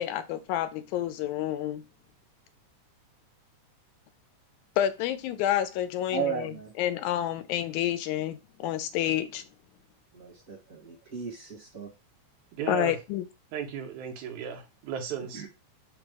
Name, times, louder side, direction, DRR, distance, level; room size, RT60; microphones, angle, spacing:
voice 1, 0.0-1.8 4.8-9.4 12.7-13.3, left 11 dB, 90° left, 2.0 m, -29 dB
voice 2, 6.1-6.7 10.1-11.9 15.3-15.5, right 6 dB, 50° right, 1.0 m, -35 dB
voice 3, 12.6-12.9 13.5-15.5, right 8 dB, 80° right, 2.0 m, -35 dB
5.0 x 2.0 x 4.7 m
omnidirectional pair, 3.3 m